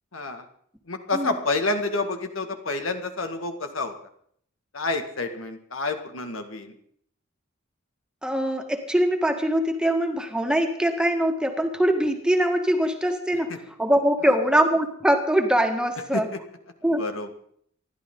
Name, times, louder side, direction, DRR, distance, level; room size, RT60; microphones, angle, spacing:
voice 1, 0.1-0.5 0.9-4.0 4.7-6.7 13.5-13.6 14.2-14.4 16.1-16.4 17.0-17.3, left 3 dB, 85° left, 6 dB, 1.9 m, -29 dB
voice 2, 8.2-13.5 13.8-16.3 16.8-17.0, right 1 dB, 5° right, 4 dB, 1.7 m, -22 dB
27.5 x 11.5 x 3.8 m, 0.65 s
head